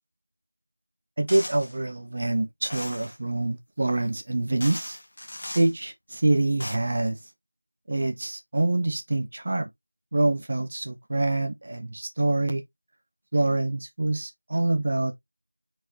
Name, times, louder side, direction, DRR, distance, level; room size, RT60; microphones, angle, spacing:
voice 1, 1.2-5.0 5.5-7.2 7.9-9.7 10.1-12.6 13.3-15.1, right 2 dB, 25° right, 0.7 m, -26 dB
sound 1, 1.3-1.8 2.7-3.2 4.1-4.2 4.6-5.7 6.4-6.8, left 1 dB, 30° left, 0.9 m, -38 dB
4.4 x 4.3 x 2.7 m
figure-of-eight pair, 175°, 0 cm